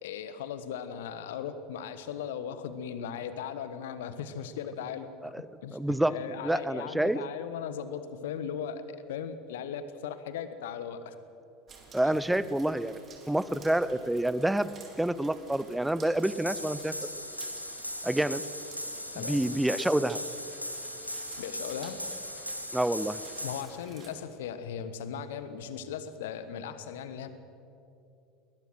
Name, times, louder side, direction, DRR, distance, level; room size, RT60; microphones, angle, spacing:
voice 1, 0.0-5.3 5.6-11.2 12.0-12.1 19.1-19.4 21.4-22.0 23.4-27.3, left 8 dB, 60° left, 12 dB, 1.3 m, -38 dB
voice 2, 5.7-6.2 6.4-7.2 11.9-13.0 13.3-14.7 15.0-16.9 18.0-18.4 19.2-20.2 22.7-23.2, right 1 dB, 5° right, 16 dB, 0.7 m, -27 dB
sound 1, 11.7-24.2, right 4 dB, 30° right, 3.5 m, -52 dB
sound 2, 16.2-23.6, left 1 dB, 90° left, 1.3 m, -38 dB
21.0 x 20.0 x 6.2 m, 2.8 s
figure-of-eight pair, 70°, 0 cm